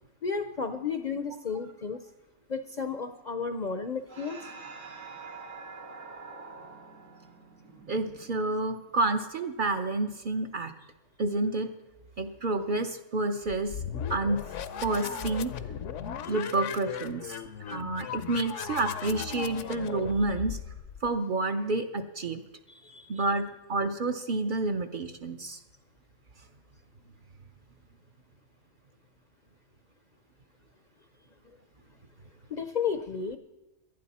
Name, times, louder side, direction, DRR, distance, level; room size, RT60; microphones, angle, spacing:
voice 1, 0.2-2.0 2.5-4.5 16.2-16.3 17.3-17.4 22.7-23.3 32.5-33.4, left 5 dB, 45° left, 8 dB, 0.6 m, -33 dB
sound 1, 4.1-8.9, right 4 dB, 75° right, 2.4 m, -46 dB
voice 2, 7.9-10.7 11.2-11.7 12.2-13.8 14.1-14.5 14.8-15.5 16.3-17.4 17.7-20.6 21.0-22.4 23.1-25.6, right 2 dB, 50° right, 6 dB, 0.8 m, -29 dB
sound 2, 13.5-21.1, left 8 dB, 70° left, 1.0 m, -37 dB
18.5 x 11.5 x 4.2 m, 1.0 s
omnidirectional pair, 1.3 m